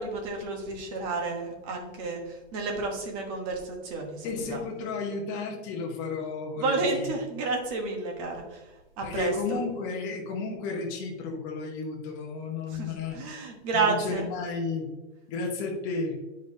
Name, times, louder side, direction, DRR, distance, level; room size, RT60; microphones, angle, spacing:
voice 1, 0.0-4.6 6.6-8.6 9.0-9.6 12.7-14.3, right 3 dB, 30° right, 2 dB, 1.2 m, -31 dB
voice 2, 4.2-7.1 9.0-13.2 13.7-14.9 15.3-16.2, left 4 dB, 25° left, 0 dB, 1.1 m, -33 dB
8.7 x 5.2 x 2.7 m, 1.1 s
supercardioid pair, 175°, 34 cm